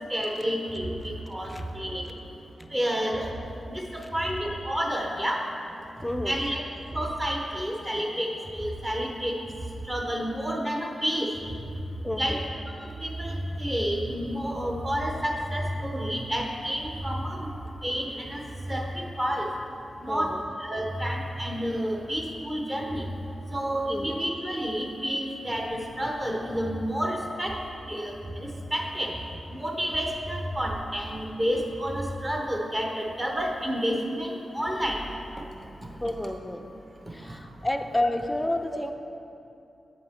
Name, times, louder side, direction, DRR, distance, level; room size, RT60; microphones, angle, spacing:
voice 1, 0.1-2.1 2.7-3.3 3.7-5.4 6.2-6.6 6.9-9.4 9.8-11.3 12.2-12.4 12.8-17.5 17.8-19.5 20.0-23.0 23.5-27.6 27.9-29.2 29.5-35.0 36.2-36.4 37.2-37.3, equal, 20° right, 0 dB, 0.8 m, -30 dB
voice 2, 6.0-6.4 12.0-12.4 20.1-20.4 23.9-24.1 36.0-36.7 37.1-38.9, left 1 dB, 10° left, 6 dB, 0.3 m, -30 dB
7.4 x 6.9 x 3.5 m, 2.7 s
wide cardioid pair, 145°, 0 cm